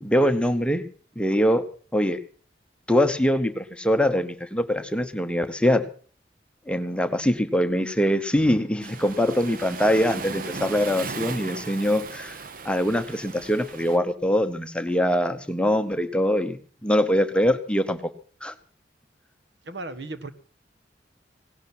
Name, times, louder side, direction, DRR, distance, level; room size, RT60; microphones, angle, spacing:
voice 1, 0.0-0.8 1.2-1.6 1.9-2.2 2.9-5.8 6.7-12.4 12.6-18.1 18.4-18.5, equal, 5° left, 9 dB, 0.9 m, -23 dB
Waves surf, 8.8-14.0, right 4 dB, 50° right, 0.9 m, -37 dB
voice 2, 19.7-20.3, right 2 dB, 70° right, 11 dB, 1.4 m, -35 dB
17.5 x 11.5 x 6.1 m, 0.43 s
head